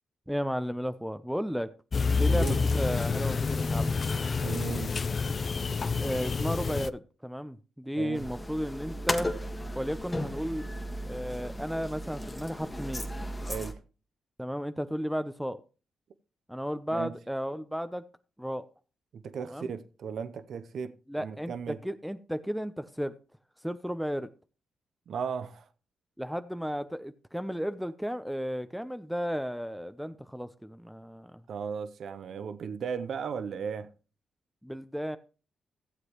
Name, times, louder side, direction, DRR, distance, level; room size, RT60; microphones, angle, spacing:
voice 1, 0.3-1.7 2.2-3.9 6.0-9.3 9.8-10.7 11.0-13.1 14.4-15.6 16.5-18.0 18.4-18.6 19.5-19.7 21.1-21.5 21.8-23.1 23.6-24.3 26.2-31.3 34.6-35.2, equal, ahead, 0.6 m, -34 dB
sound 1, 1.9-6.9, left 4 dB, 45° left, 0.5 m, -28 dB
voice 2, 2.3-2.6 4.4-5.2 8.0-8.3 13.5-13.8 16.9-17.2 19.1-21.8 25.1-25.6 31.5-33.9, right 6 dB, 65° right, 0.7 m, -36 dB
sound 2, 8.1-13.7, equal, 15° left, 1.7 m, -35 dB
15.0 x 7.8 x 3.0 m
supercardioid pair, 50°, 0 cm